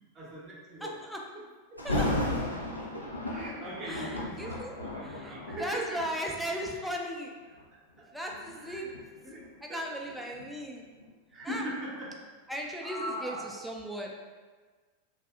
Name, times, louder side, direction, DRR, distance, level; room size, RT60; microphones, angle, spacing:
voice 1, 0.1-1.0 1.3-1.4 3.2-6.0 8.6-8.9 9.2-9.4 9.7-10.2 11.3-12.2 12.8-13.5, equal, 30° right, -5 dB, 0.7 m, -40 dB
voice 2, 0.8-1.2 1.8-2.1 3.8-4.8 5.0-7.3 8.1-9.0 9.6-10.9 11.4-11.6 12.5-14.2, equal, ahead, -1 dB, 0.3 m, -37 dB
Thunder, 1.8-6.8 7.4-7.6 8.3-11.1 11.4-11.5, left 1 dB, 85° left, 0.4 m, -35 dB
2.6 x 2.4 x 2.3 m, 1.4 s
figure-of-eight pair, 90°, 0 cm